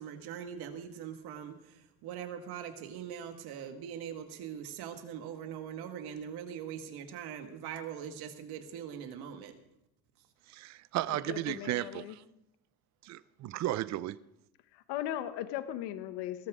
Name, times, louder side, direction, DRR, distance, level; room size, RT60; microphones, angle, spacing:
voice 1, 0.0-9.6, right 8 dB, 65° right, 2.1 m, -42 dB
voice 2, 10.5-12.2 13.0-14.2, right 15 dB, 40° right, 0.6 m, -34 dB
voice 3, 11.1-12.2 14.7-16.5, left 12 dB, 75° left, 1.3 m, -38 dB
20.0 x 13.0 x 3.8 m
cardioid pair, 140°, 41 cm